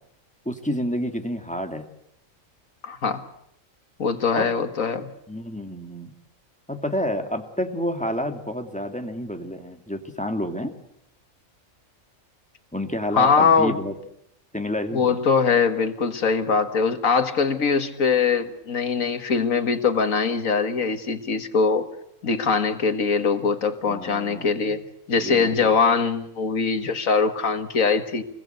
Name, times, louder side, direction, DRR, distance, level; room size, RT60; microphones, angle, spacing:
voice 1, 0.5-1.9 4.3-4.5 5.3-6.1 6.7-10.7 12.7-13.9 14.5-15.2 23.9-24.7 25.2-25.7, equal, 5° left, 5 dB, 2.4 m, -29 dB
voice 2, 2.8-3.3 4.0-5.1 13.1-13.8 14.9-21.9 22.2-24.8 25.1-28.2, left 5 dB, 85° left, 8 dB, 2.1 m, -22 dB
27.5 x 21.5 x 8.1 m, 0.77 s
omnidirectional pair, 1.4 m